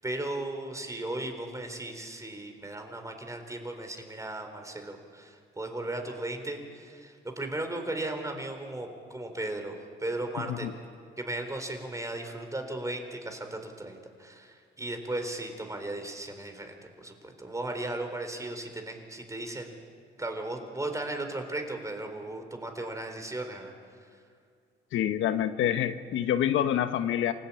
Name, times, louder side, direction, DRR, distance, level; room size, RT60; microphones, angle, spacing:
voice 1, 0.0-10.7 11.2-19.8 20.2-24.2, right 2 dB, 15° right, 5 dB, 4.2 m, -36 dB
voice 2, 10.4-10.7 24.9-27.3, left 10 dB, 80° left, 10 dB, 1.1 m, -27 dB
28.5 x 17.5 x 8.8 m, 2.2 s
cardioid pair, 90°, 20 cm